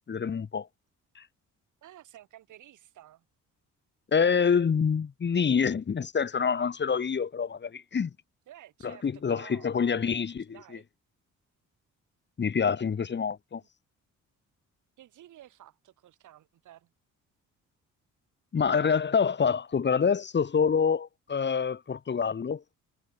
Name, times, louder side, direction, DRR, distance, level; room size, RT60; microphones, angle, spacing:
voice 1, 0.1-0.7 1.1-1.2 4.1-8.1 8.8-10.5 12.4-13.6 18.5-22.6, left 6 dB, 35° left, 1.6 m, -26 dB
voice 2, 1.8-3.3 8.5-9.7 10.5-10.9 13.6-13.7 15.0-16.9, right 13 dB, 80° right, 7.6 m, -52 dB
cardioid pair, 90°, 30 cm